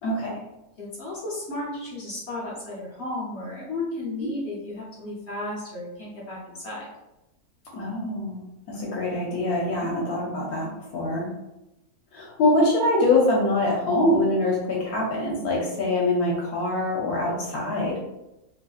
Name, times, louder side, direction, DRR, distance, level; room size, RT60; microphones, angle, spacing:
voice 1, 0.0-0.4 7.7-11.3 12.1-18.0, left 2 dB, 80° left, -4 dB, 1.1 m, -24 dB
voice 2, 0.8-6.9 9.8-9.9, left 2 dB, 55° left, -5 dB, 0.8 m, -34 dB
2.9 x 2.5 x 2.3 m, 0.95 s
omnidirectional pair, 1.6 m